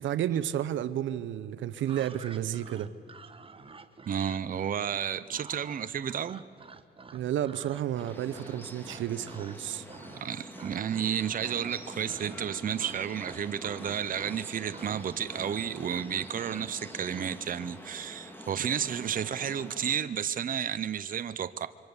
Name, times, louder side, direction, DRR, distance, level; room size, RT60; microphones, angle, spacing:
voice 1, 0.0-2.9 7.1-9.8, right 11 dB, 75° right, 0.9 m, -31 dB
sound 1, 1.8-9.6 9.9-10.3 10.5-11.2 11.4-17.4, right 4 dB, 25° right, 1.3 m, -48 dB
voice 2, 4.1-6.4 10.1-21.7, right 8 dB, 45° right, 0.8 m, -32 dB
sound 2, 7.9-20.0, equal, 10° left, 3.2 m, -46 dB
27.0 x 24.0 x 7.2 m
cardioid pair, 90°, 20 cm